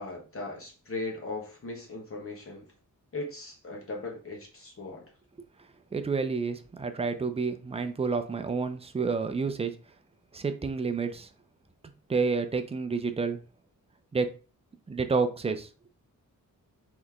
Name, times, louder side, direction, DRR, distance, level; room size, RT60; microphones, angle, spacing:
voice 1, 0.0-2.7 3.1-5.0, left 2 dB, 40° left, 1.3 m, -38 dB
voice 2, 5.9-9.8 10.3-11.3 12.1-13.4 14.1-14.3 14.9-15.7, right 4 dB, 20° right, 0.4 m, -29 dB
4.3 x 3.0 x 3.5 m
wide cardioid pair, 140°, 34 cm